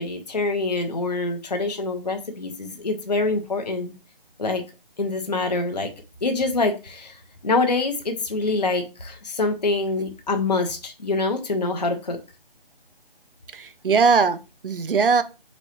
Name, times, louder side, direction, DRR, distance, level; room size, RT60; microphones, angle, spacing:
voice 1, 0.0-3.9 4.4-4.6 5.0-5.9 6.2-7.2 7.4-12.2, left 3 dB, 45° left, 0.6 m, -25 dB
voice 2, 13.5-15.2, right 5 dB, 65° right, 0.5 m, -20 dB
3.8 x 3.1 x 4.2 m
figure-of-eight pair, 180°, 29 cm